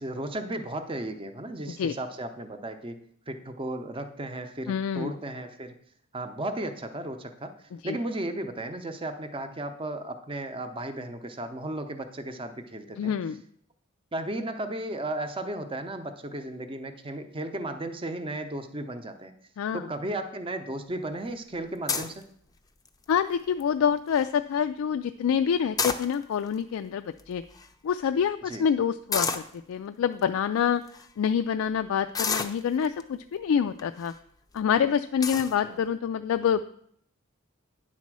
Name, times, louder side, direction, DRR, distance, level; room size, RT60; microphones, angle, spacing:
voice 1, 0.0-3.0 3.3-5.8 6.1-7.5 7.8-13.1 14.1-19.3 19.7-22.3 28.5-28.6 35.7-35.8, right 1 dB, 25° right, 7 dB, 0.6 m, -35 dB
voice 2, 4.7-5.1 7.8-8.0 13.0-13.4 19.6-19.8 23.1-27.4 27.8-30.8 31.2-34.1 34.5-36.7, left 7 dB, 80° left, 9 dB, 0.3 m, -26 dB
sound 1, 21.9-22.2 22.8-23.2 23.6-23.7 23.9-24.3 25.6-26.5 27.2-27.3 27.5-27.7 29.1-29.5 30.2-30.3 30.9-31.1 32.1-33.0 33.8-34.1 34.6-34.7 35.2-35.5, left 5 dB, 20° left, 0.5 m, -29 dB
9.7 x 4.2 x 6.1 m, 0.67 s
head